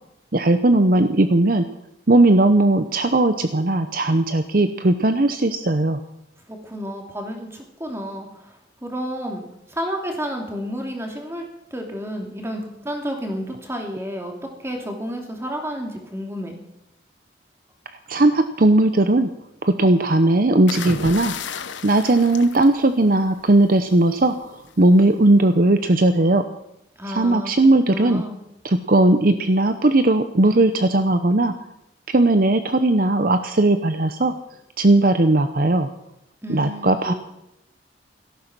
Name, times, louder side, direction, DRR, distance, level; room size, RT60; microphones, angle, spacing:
voice 1, 0.3-1.6 2.1-6.0 18.1-19.3 19.6-21.3 21.8-26.4 27.1-28.2 28.6-31.5 32.1-34.3 34.8-35.9 36.5-37.1, right 2 dB, 50° right, 9 dB, 0.8 m, -17 dB
voice 2, 6.5-8.5 8.8-9.4 9.7-11.4 11.7-14.3 14.6-16.6 27.0-27.5 27.9-28.4 36.4-37.1, equal, 15° right, 2 dB, 2.8 m, -31 dB
sound 1, 20.7-23.4 24.7-25.0, left 5 dB, 85° left, 1.1 m, -33 dB
17.0 x 14.0 x 6.1 m, 0.83 s
head